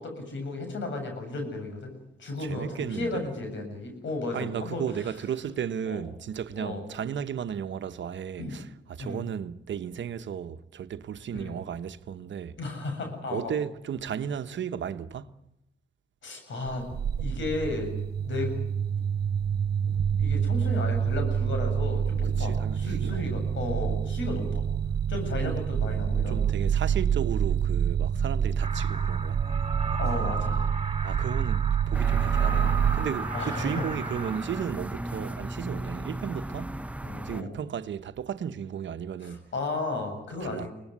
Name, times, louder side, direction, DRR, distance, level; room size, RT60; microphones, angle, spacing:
voice 1, 0.0-4.8 5.9-6.0 6.6-6.8 8.4-8.6 9.0-9.2 11.3-11.6 12.6-13.5 16.2-16.8 17.2-17.9 18.2-18.5 19.8-19.9 20.2-24.6 25.1-26.5 30.0-30.7 32.4-32.7 33.3-33.8 37.0-37.5 39.2-40.7, left 3 dB, 75° left, 7.6 m, -34 dB
voice 2, 2.4-3.2 4.3-12.6 13.3-15.4 22.2-23.3 25.4-25.6 25.9-29.4 31.0-36.8 37.2-39.4 40.4-40.7, right 8 dB, 75° right, 1.1 m, -34 dB
sound 1, 16.7-33.0, right 8 dB, 55° right, 0.8 m, -27 dB
sound 2, 28.6-34.7, right 4 dB, 30° right, 3.0 m, -36 dB
sound 3, 31.9-37.4, right 1 dB, 5° right, 0.8 m, -35 dB
23.5 x 19.0 x 9.8 m
cardioid pair, 55°, 19 cm